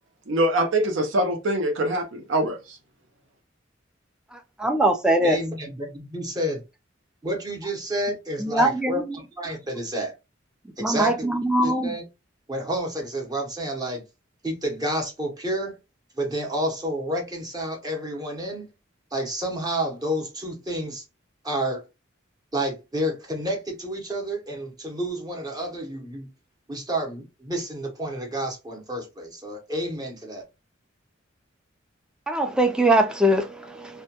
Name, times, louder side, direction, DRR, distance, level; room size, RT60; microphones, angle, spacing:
voice 1, 0.3-2.8, right 1 dB, 65° right, 0.6 m, -24 dB
voice 2, 4.6-5.4 8.4-9.2 10.8-11.9 32.3-34.0, right 1 dB, 5° right, 0.3 m, -22 dB
voice 3, 5.2-6.6 7.2-10.1 10.8-12.0 12.5-14.0 14.4-15.8 16.2-18.7 19.1-21.0 21.4-21.8 22.5-26.3 26.7-30.4, right 1 dB, 20° right, 0.7 m, -30 dB
2.1 x 2.1 x 2.8 m
head